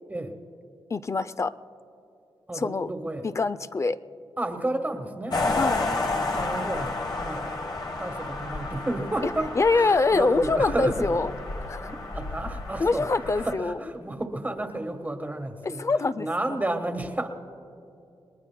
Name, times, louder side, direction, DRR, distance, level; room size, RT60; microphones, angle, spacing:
voice 1, 0.9-1.5 2.5-2.9 3.4-4.0 5.6-5.9 9.6-11.3 11.7-11.9 12.8-13.8 15.6-16.3, left 3 dB, 35° left, 14 dB, 0.4 m, -24 dB
voice 2, 2.5-3.3 4.4-5.4 6.3-11.2 11.8-13.1 13.4-15.9 16.2-17.3, right 1 dB, 20° right, 6 dB, 1.3 m, -32 dB
sound 1, 5.3-13.5, left 2 dB, 50° left, 1.2 m, -31 dB
29.5 x 20.0 x 2.2 m, 2.7 s
cardioid pair, 90°, 9 cm